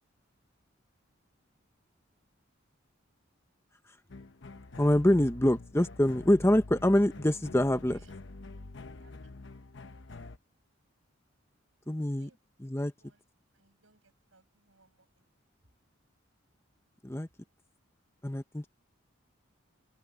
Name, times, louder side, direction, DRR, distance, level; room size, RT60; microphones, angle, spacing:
sound 1, 4.1-10.4, left 2 dB, 60° left, 0.9 m, -46 dB
voice 1, 4.8-8.0 11.9-12.3 12.6-12.9 17.0-17.3 18.2-18.7, left 1 dB, 15° left, 0.9 m, -25 dB
voice 2, 8.9-9.3 12.2-12.4 13.0-13.2 13.5-15.3, right 3 dB, 80° right, 7.2 m, -65 dB
head